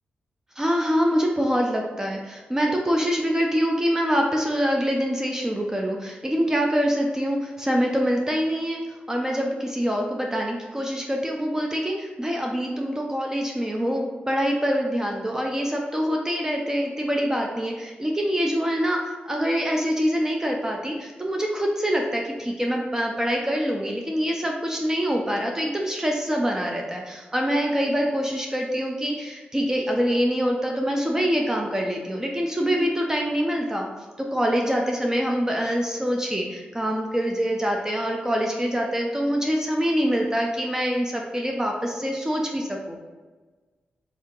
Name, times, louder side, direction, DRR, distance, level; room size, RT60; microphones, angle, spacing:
voice 1, 0.6-33.9 34.2-43.0, equal, 15° right, 0 dB, 0.5 m, -25 dB
3.5 x 2.8 x 3.7 m, 1.3 s
cardioid pair, 70°, 3 cm